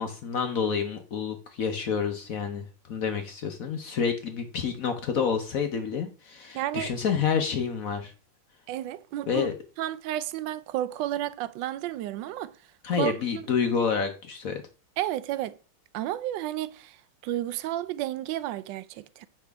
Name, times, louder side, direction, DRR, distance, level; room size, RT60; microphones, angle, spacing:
voice 1, 0.0-8.1 9.3-9.5 12.8-14.6, left 6 dB, 60° left, 0.9 m, -28 dB
voice 2, 6.5-6.9 8.7-9.5 9.8-12.5 13.0-13.4 15.0-15.6 15.9-19.3, right 13 dB, 75° right, 1.1 m, -32 dB
8.4 x 5.8 x 3.4 m
omnidirectional pair, 2.3 m